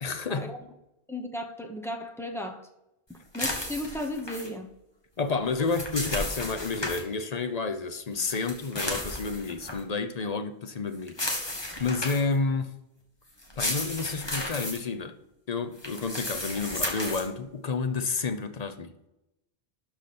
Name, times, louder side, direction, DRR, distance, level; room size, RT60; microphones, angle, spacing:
voice 1, 0.0-0.5 5.2-11.4 11.8-12.7 13.6-15.2 15.5-19.1, left 4 dB, 45° left, 0.8 m, -30 dB
voice 2, 1.1-2.7 3.3-4.7, left 1 dB, 5° left, 0.9 m, -35 dB
sound 1, 3.3-4.5 5.4-7.0 8.2-9.8 11.1-12.3 13.4-14.8 15.8-17.3, left 1 dB, 25° left, 1.6 m, -33 dB
12.0 x 5.0 x 4.2 m
omnidirectional pair, 1.0 m